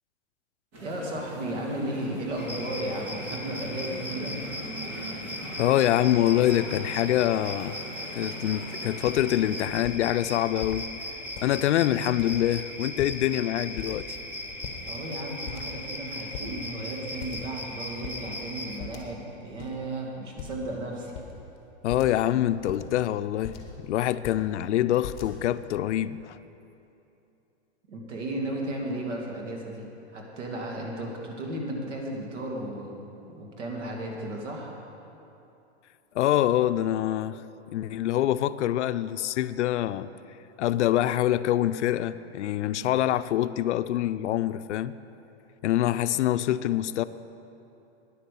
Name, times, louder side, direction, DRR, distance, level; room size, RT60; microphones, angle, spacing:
sound 1, 0.7-9.6, right 1 dB, 35° right, 2.5 m, -41 dB
voice 1, 0.8-4.4 14.8-21.1 27.9-34.7, right 1 dB, 85° right, -1 dB, 2.6 m, -34 dB
sound 2, 2.4-18.8, left 1 dB, 5° right, 0.7 m, -38 dB
voice 2, 5.6-7.8 8.1-10.9 11.4-14.1 21.8-26.4 36.2-37.4 37.7-40.1 40.6-44.9 45.6-47.0, left 12 dB, 80° left, 14 dB, 0.5 m, -25 dB
sound 3, 9.0-9.3 9.7-10.0 10.6-10.8 11.3-11.7 12.2-12.6 12.9-13.4 13.8-14.2 14.5-15.2 15.4-16.0 16.3-16.5 17.2-17.6 17.9-18.2 18.8-19.3 19.6-19.7 20.4-20.7 21.1-21.3 21.9-22.2 22.6-23.8 24.1-24.5 25.0-25.6, left 8 dB, 30° left, 1.3 m, -41 dB
10.0 x 8.6 x 6.9 m, 2.8 s
hypercardioid pair, 150°, 35 cm